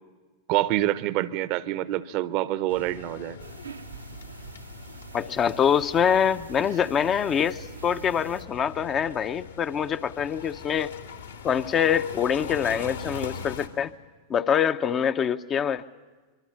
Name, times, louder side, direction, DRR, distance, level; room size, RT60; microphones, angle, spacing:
voice 1, 0.5-3.4, right 15 dB, 45° right, 16 dB, 0.8 m, -26 dB
sound 1, 2.7-13.7, left 5 dB, 75° left, 2.3 m, -42 dB
sound 2, 3.4-8.5, right 4 dB, 80° right, 0.9 m, -44 dB
voice 2, 5.1-10.9 11.4-13.9 14.3-15.8, left 8 dB, 25° left, 11 dB, 0.7 m, -25 dB
25.0 x 23.5 x 8.8 m, 1.3 s
figure-of-eight pair, 90°, 0 cm